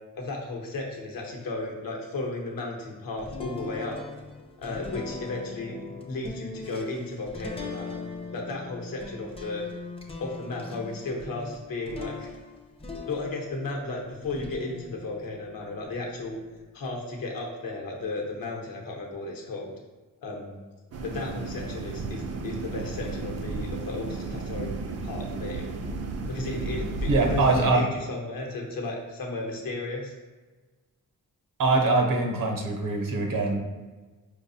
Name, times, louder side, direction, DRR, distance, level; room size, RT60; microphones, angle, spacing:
voice 1, 0.1-4.0 4.6-8.0 8.3-9.6 10.2-12.3 13.0-16.4 16.7-19.7 20.2-20.6 21.0-24.7 25.0-25.7 26.3-30.1, left 2 dB, 70° left, 0 dB, 0.8 m, -34 dB
sound 1, 3.2-13.8 14.2-16.6, left 3 dB, 15° left, 0.5 m, -41 dB
sound 2, 20.9-27.7, right 3 dB, 45° right, 0.4 m, -33 dB
voice 2, 27.1-27.9 31.6-33.6, right 3 dB, 65° right, 2 dB, 0.8 m, -23 dB
4.7 x 2.3 x 2.7 m, 1.3 s
cardioid pair, 80°, 35 cm